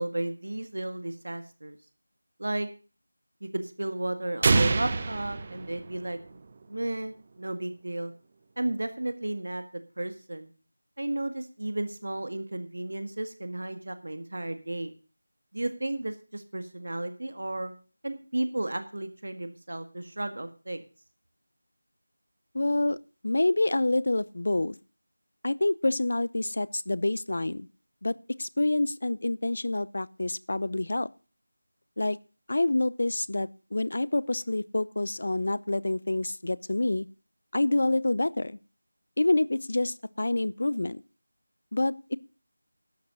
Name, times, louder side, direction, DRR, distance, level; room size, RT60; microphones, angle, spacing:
voice 1, 0.0-1.8 2.4-2.7 3.4-6.2 6.7-8.1 8.6-9.6 10.0-10.5 11.0-14.9 15.5-17.7 18.0-20.8, right 1 dB, 65° right, 10 dB, 1.8 m, -33 dB
sound 1, 4.4-6.3, right 3 dB, 25° right, 0.8 m, -26 dB
voice 2, 22.5-23.0 23.2-24.7 25.4-27.7 28.0-31.1 32.0-32.2 32.5-37.1 37.5-38.6 39.2-41.0 41.7-42.2, left 2 dB, 50° left, 20 dB, 0.6 m, -27 dB
12.0 x 8.6 x 6.2 m, 0.35 s
figure-of-eight pair, 175°, 0 cm